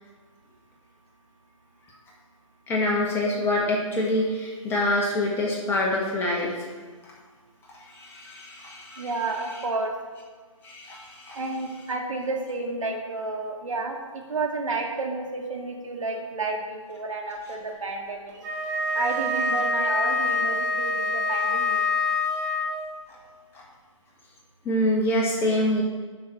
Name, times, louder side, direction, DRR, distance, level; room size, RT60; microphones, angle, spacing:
voice 1, 2.7-6.5 7.0-7.1 7.9-9.2 9.5-9.6 10.6-11.4 23.1-23.2 23.5-23.6 24.6-25.8, left 1 dB, 15° left, -3 dB, 1.5 m, -26 dB
voice 2, 9.0-9.9 11.4-18.4 18.9-21.8, right 3 dB, 70° right, 1 dB, 1.9 m, -31 dB
Wind instrument woodwind instrument, 18.3-23.0, left 2 dB, 35° right, 1.6 m, -26 dB
7.2 x 6.1 x 6.1 m, 1.5 s
figure-of-eight pair, 140°, 17 cm